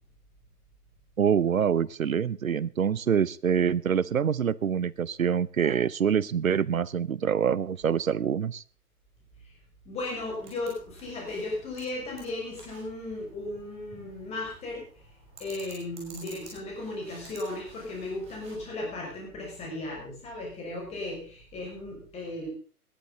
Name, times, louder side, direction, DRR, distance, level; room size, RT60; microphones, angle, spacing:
voice 1, 1.2-8.6, right 7 dB, 60° right, 22 dB, 0.8 m, -25 dB
voice 2, 9.8-14.8 15.4-22.5, left 2 dB, 15° left, -1 dB, 6.2 m, -36 dB
sound 1, 10.2-18.5, right 3 dB, 15° right, 5.4 m, -52 dB
19.0 x 11.5 x 4.0 m, 0.43 s
figure-of-eight pair, 135°, 46 cm